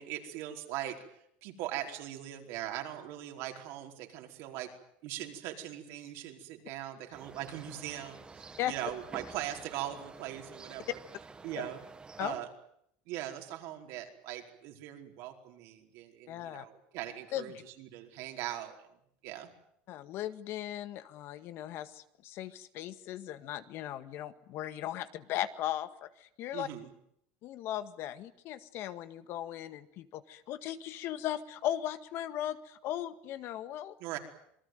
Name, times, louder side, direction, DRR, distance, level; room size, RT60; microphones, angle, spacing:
voice 1, 0.0-4.7 5.0-11.0 11.4-11.8 12.2-12.5 13.1-18.9 19.2-19.5 26.5-26.9 34.0-34.2, right 12 dB, 65° right, 3 dB, 4.7 m, -40 dB
sound 1, 7.1-12.4, right 4 dB, 20° right, 1.8 m, -50 dB
voice 2, 16.3-16.7 17.3-17.5 19.9-26.7 27.4-34.0, left 12 dB, 55° left, 12 dB, 1.8 m, -37 dB
27.5 x 19.5 x 9.4 m, 0.72 s
supercardioid pair, 115°, 5 cm